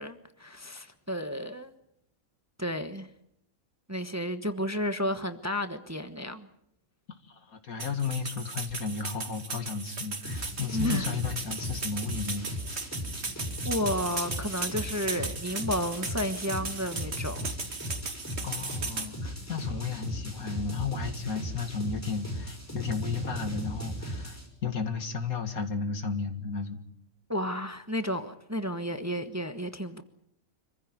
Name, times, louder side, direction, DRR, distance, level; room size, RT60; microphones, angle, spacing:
voice 1, 0.0-1.7 2.6-3.1 3.9-6.5 10.7-11.1 13.6-17.5 27.3-30.0, equal, 10° right, 1.2 m, -32 dB
voice 2, 7.3-12.9 18.4-26.8, left 5 dB, 80° left, 2.5 m, -34 dB
sound 1, 7.8-19.1, right 3 dB, 50° right, 2.5 m, -37 dB
sound 2, 10.2-24.5, equal, 10° left, 5.3 m, -37 dB
26.0 x 15.0 x 9.6 m
omnidirectional pair, 1.5 m